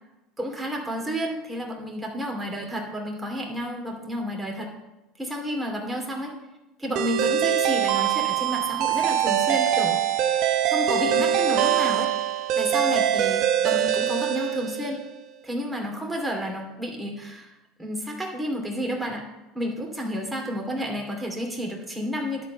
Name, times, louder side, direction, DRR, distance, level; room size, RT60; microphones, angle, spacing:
voice 1, 0.4-4.7 5.2-6.4 6.8-10.0 10.7-12.1 12.5-15.0 15.4-17.5 17.8-19.3 19.5-22.5, equal, 10° right, 0 dB, 2.5 m, -31 dB
sound 1, 7.0-15.1, right 10 dB, 60° right, 0.8 m, -23 dB
11.0 x 4.5 x 7.0 m, 1.0 s
hypercardioid pair, 85°, 0 cm